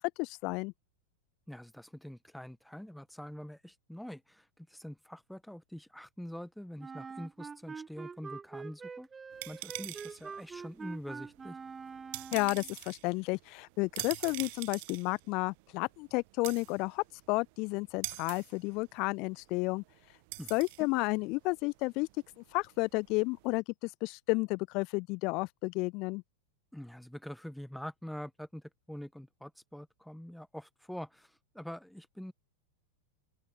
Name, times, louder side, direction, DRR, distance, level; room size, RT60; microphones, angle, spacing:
voice 1, 0.2-0.7 12.3-19.8 20.5-22.1 22.5-26.2, left 26 dB, 40° left, 0.6 m, -32 dB
voice 2, 1.5-9.1 9.5-11.6 20.4-20.5 20.8-20.9 26.7-32.3, equal, ahead, 1.5 m, -45 dB
Wind instrument woodwind instrument, 6.8-12.7, right 5 dB, 15° right, 1.6 m, -45 dB
sound 1, 9.3-23.6, right 29 dB, 45° right, 1.0 m, -46 dB
open air
figure-of-eight pair, 90°, 0 cm